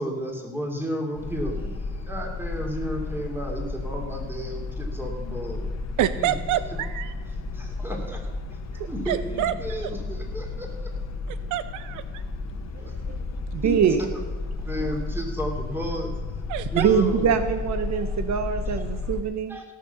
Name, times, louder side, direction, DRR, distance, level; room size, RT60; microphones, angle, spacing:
voice 1, 0.0-5.7 6.1-6.4 6.7-6.8 7.5-8.2 8.5-10.9 12.8-12.9 13.6-13.9 14.7-16.1 16.7-17.3 19.5-19.6, equal, 5° right, 1 dB, 3.0 m, -33 dB
sound 1, 1.2-19.2, left 3 dB, 60° left, 1.5 m, -33 dB
voice 2, 6.0-7.1 8.8-9.5 11.3-12.2 16.5-16.9, right 12 dB, 85° right, 14 dB, 0.6 m, -27 dB
voice 3, 12.8-13.2 13.5-14.1 14.8-14.9 16.7-19.6, right 7 dB, 65° right, 10 dB, 0.9 m, -24 dB
17.0 x 6.7 x 6.9 m, 1.4 s
cardioid pair, 90°, 30 cm